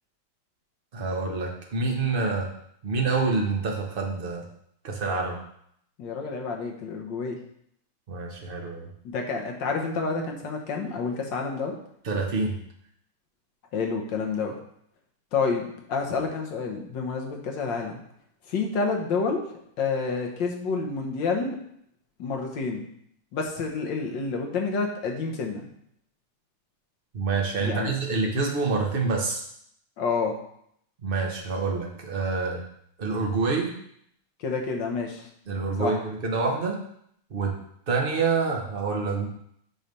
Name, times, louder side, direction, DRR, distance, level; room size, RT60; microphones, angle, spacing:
voice 1, 0.9-2.5 2.8-4.5 4.8-5.4 8.1-8.9 12.0-12.6 27.1-29.4 31.0-32.6 33.0-33.7 35.5-36.8 37.3-37.5 37.9-39.3, right 4 dB, 40° right, 1 dB, 0.8 m, -27 dB
voice 2, 6.0-7.4 9.1-11.8 13.7-14.6 15.3-15.6 15.9-18.0 18.5-19.4 19.8-21.6 22.2-22.8 23.3-25.7 27.6-27.9 30.0-30.3 34.4-35.3 35.8-36.0, left 4 dB, 60° left, 2 dB, 1.7 m, -28 dB
8.6 x 3.3 x 5.3 m, 0.71 s
omnidirectional pair, 2.3 m